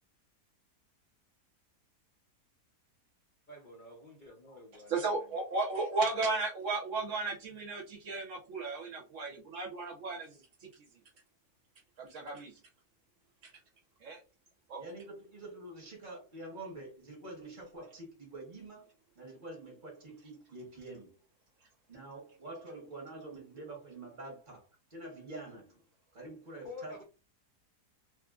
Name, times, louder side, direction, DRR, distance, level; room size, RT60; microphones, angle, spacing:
voice 1, 3.5-5.1 26.6-27.0, left 3 dB, 65° left, 0.5 m, -48 dB
voice 2, 4.9-10.9 12.0-12.5 13.4-13.5 14.0-14.2 14.7-14.8, right 3 dB, 60° right, 0.9 m, -35 dB
voice 3, 14.8-18.9 19.1-21.2 21.9-25.8 26.1-27.0, right 2 dB, 35° right, 1.0 m, -47 dB
3.1 x 2.4 x 2.3 m
omnidirectional pair, 1.7 m